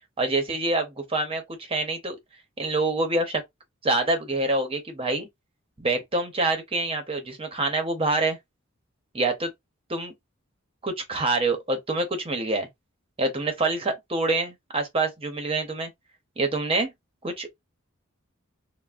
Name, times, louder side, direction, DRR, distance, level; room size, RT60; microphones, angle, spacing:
voice 1, 0.2-2.2 2.6-3.4 3.8-5.3 5.8-8.4 9.1-9.5 9.9-10.1 10.8-12.7 13.2-15.9 16.4-16.9 17.2-17.5, right 2 dB, 25° right, 0.7 m, -26 dB
3.3 x 2.0 x 2.4 m
head